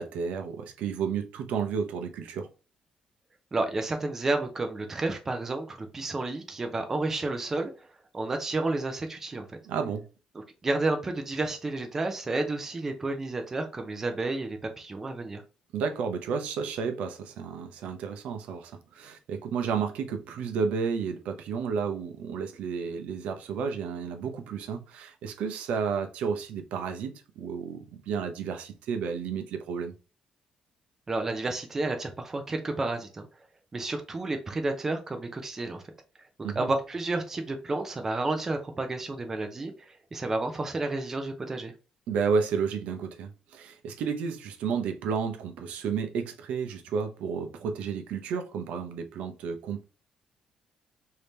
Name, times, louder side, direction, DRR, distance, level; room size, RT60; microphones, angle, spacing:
voice 1, 0.0-2.5 9.6-10.0 15.7-29.9 36.4-36.7 42.1-49.8, right 6 dB, 80° right, 0.6 m, -32 dB
voice 2, 3.5-7.7 8.1-9.5 10.3-15.4 31.1-33.3 33.7-35.8 36.6-41.7, right 2 dB, 20° right, 0.5 m, -31 dB
3.4 x 2.8 x 3.2 m
cardioid pair, 175°, 2 cm